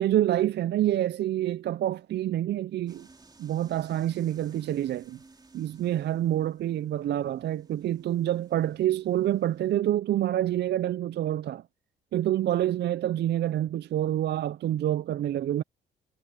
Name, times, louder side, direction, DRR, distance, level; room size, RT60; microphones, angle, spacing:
voice 1, 0.0-3.1 3.4-5.2 5.5-11.6 12.1-15.6, right 12 dB, 60° right, 0.5 m, -27 dB
sound 1, 2.9-9.8, right 3 dB, 20° right, 3.4 m, -57 dB
cardioid pair, 90°, 20 cm